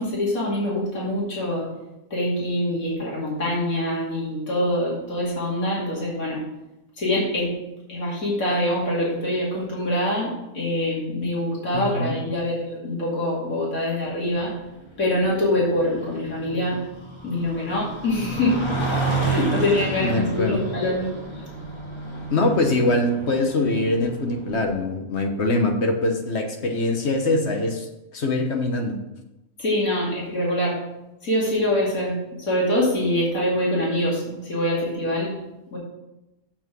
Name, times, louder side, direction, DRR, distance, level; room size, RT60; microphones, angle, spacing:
voice 1, 0.0-1.7 2.1-6.4 7.0-7.5 7.9-14.5 15.0-16.8 17.2-18.6 19.2-21.1 29.6-30.8 31.2-32.1 32.4-35.3 35.7-35.8, left 1 dB, 85° left, -6 dB, 3.0 m, -24 dB
voice 2, 11.7-12.2 20.0-20.6 22.3-29.0, left 2 dB, 55° left, 4 dB, 1.4 m, -23 dB
sound 1, 14.1-24.7, right 3 dB, 20° left, 1.2 m, -31 dB
7.3 x 6.0 x 6.0 m, 0.95 s
omnidirectional pair, 1.4 m